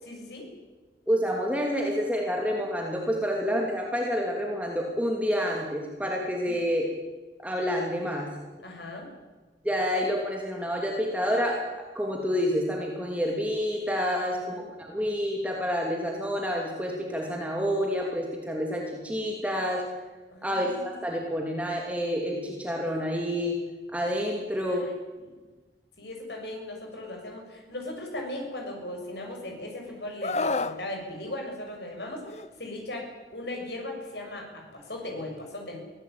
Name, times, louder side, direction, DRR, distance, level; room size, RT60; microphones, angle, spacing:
voice 1, 0.0-0.5 8.6-9.1 14.5-14.6 20.3-20.9 24.7-24.9 26.0-35.8, left 1 dB, 70° left, 1 dB, 7.2 m, -38 dB
voice 2, 1.1-6.9 7.4-8.3 9.6-11.6 11.9-19.8 20.4-23.6 23.9-24.9, equal, 10° right, -1 dB, 2.9 m, -28 dB
Screaming, 30.2-30.8 32.3-32.5, left 3 dB, 35° left, 0.8 m, -28 dB
23.5 x 17.0 x 8.9 m, 1.3 s
head